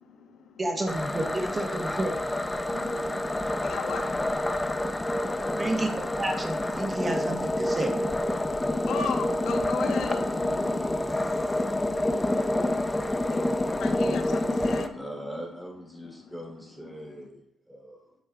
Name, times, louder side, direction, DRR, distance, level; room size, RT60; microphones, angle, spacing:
voice 1, 0.0-0.6 1.6-2.0 2.3-6.1 8.1-15.5 15.9-16.4 16.9-17.3, left 6 dB, 75° left, 4 dB, 1.4 m, -40 dB
voice 2, 0.6-2.1 5.6-5.9 6.2-8.0, right 1 dB, 30° right, 3 dB, 1.5 m, -30 dB
sound 1, 0.9-14.9, left 1 dB, 15° left, 0.9 m, -28 dB
voice 3, 14.9-18.2, equal, 5° right, -1 dB, 3.6 m, -41 dB
9.6 x 8.3 x 3.8 m, 0.70 s
cardioid pair, 85°, 0 cm